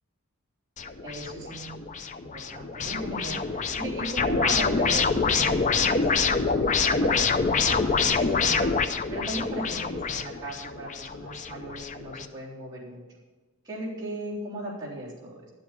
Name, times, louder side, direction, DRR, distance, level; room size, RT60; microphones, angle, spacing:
sound 1, 0.8-12.3, left 4 dB, 35° left, 0.5 m, -26 dB
voice 1, 1.0-1.8 2.3-13.0 13.6-15.5, right 1 dB, 20° right, -8 dB, 3.5 m, -37 dB
11.5 x 7.9 x 6.8 m, 1.3 s
head